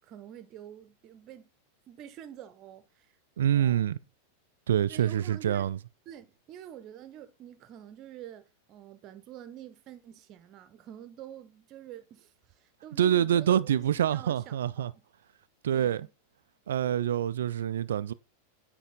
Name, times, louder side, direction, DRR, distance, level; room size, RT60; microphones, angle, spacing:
voice 1, 0.0-1.5 1.9-3.1 3.5-4.0 4.9-5.7 6.1-15.0 15.7-16.1, right 11 dB, 35° right, 0.8 m, -47 dB
voice 2, 3.4-4.0 4.7-5.8 13.0-14.9 15.6-16.1 16.7-18.1, right 10 dB, 60° right, 0.3 m, -26 dB
9.2 x 3.5 x 3.8 m
figure-of-eight pair, 90°, 0 cm